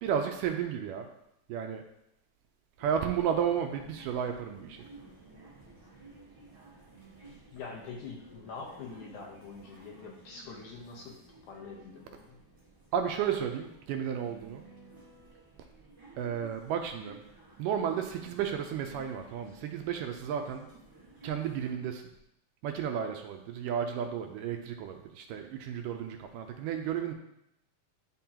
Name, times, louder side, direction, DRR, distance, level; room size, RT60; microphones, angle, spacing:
voice 1, 0.0-1.1 1.5-1.9 2.8-4.8 12.9-14.6 16.2-17.2 17.6-20.7 21.2-22.1 22.6-27.1, right 8 dB, 80° right, 5 dB, 2.1 m, -33 dB
sound 1, 2.8-21.7, right 3 dB, 10° right, 1.3 m, -54 dB
voice 2, 7.3-11.2 11.5-12.4, left 4 dB, 70° left, -1 dB, 2.2 m, -45 dB
10.5 x 3.8 x 2.9 m, 0.81 s
omnidirectional pair, 3.9 m